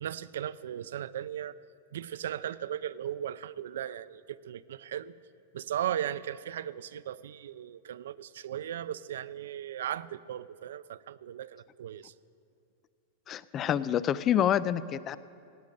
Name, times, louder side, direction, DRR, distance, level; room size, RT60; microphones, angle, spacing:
voice 1, 0.0-1.6 1.9-5.1 5.5-12.1, right 10 dB, 85° right, 17 dB, 0.5 m, -37 dB
voice 2, 13.3-15.2, left 10 dB, 25° left, 17 dB, 0.4 m, -27 dB
17.0 x 9.2 x 8.5 m, 2.5 s
supercardioid pair, 155°, 0 cm